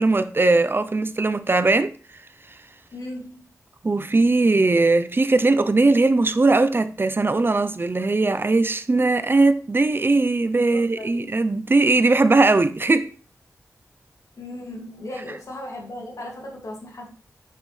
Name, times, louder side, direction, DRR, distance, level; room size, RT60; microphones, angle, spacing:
voice 1, 0.0-1.9 3.8-13.1, right 3 dB, 40° right, 0.7 m, -19 dB
voice 2, 2.9-3.5 10.6-11.2 14.4-17.1, left 1 dB, 75° left, 2.4 m, -37 dB
7.6 x 6.5 x 3.4 m
wide cardioid pair, 65°, 6 cm